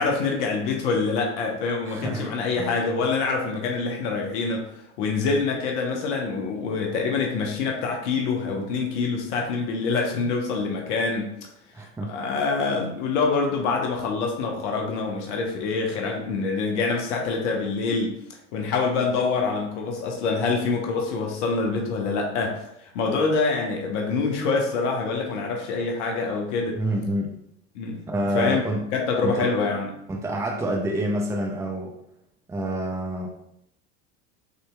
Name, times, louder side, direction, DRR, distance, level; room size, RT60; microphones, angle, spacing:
voice 1, 0.0-11.3 12.1-18.2 18.5-26.8 27.7-28.0 28.3-28.6 28.9-29.9, left 4 dB, 65° left, 1 dB, 0.9 m, -25 dB
voice 2, 1.8-2.7 11.7-12.2 26.7-27.3 28.1-28.9 29.2-29.5 30.1-32.0 32.5-33.3, right 1 dB, 10° right, 0 dB, 0.5 m, -28 dB
6.5 x 2.9 x 2.2 m, 0.77 s
hypercardioid pair, 80°, 38 cm